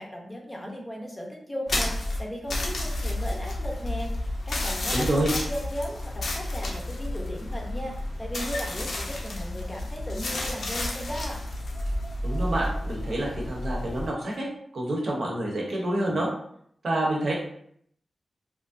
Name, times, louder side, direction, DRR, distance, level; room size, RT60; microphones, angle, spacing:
voice 1, 0.0-11.4, equal, 15° left, -1 dB, 0.6 m, -36 dB
sound 1, 1.7-14.1, left 1 dB, 70° left, 0.6 m, -31 dB
voice 2, 4.9-5.3 12.2-14.5 14.7-16.3 16.8-17.3, right 1 dB, 70° right, -2 dB, 0.8 m, -27 dB
3.0 x 2.6 x 2.5 m, 0.67 s
wide cardioid pair, 135°, 0 cm